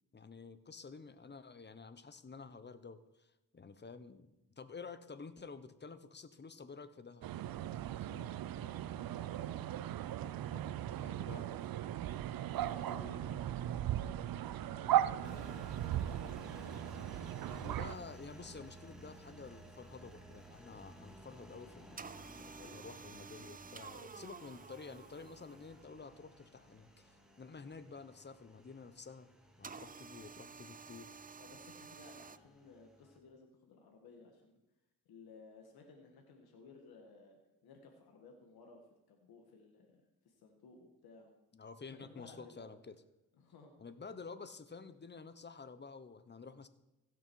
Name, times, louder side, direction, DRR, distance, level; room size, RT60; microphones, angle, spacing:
voice 1, 0.1-7.3 11.0-11.5 12.9-13.2 17.5-29.3 29.6-31.1 41.5-43.0 43.8-46.7, left 4 dB, 30° left, 13 dB, 0.9 m, -51 dB
sound 1, 7.2-17.9, right 12 dB, 70° right, 0.6 m, -37 dB
voice 2, 8.6-9.4 10.5-11.8 12.5-13.8 14.5-16.5 22.4-22.8 23.7-23.9 31.4-34.6 35.0-41.3 41.9-42.7 43.3-43.7, left 4 dB, 85° left, 2 dB, 1.6 m, -58 dB
Engine, 15.2-33.2, right 1 dB, ahead, 2.1 m, -56 dB
sound 2, 22.0-25.9 29.6-32.4, right 5 dB, 25° right, 0.5 m, -51 dB
16.5 x 6.2 x 4.6 m, 0.98 s
cardioid pair, 65°, 37 cm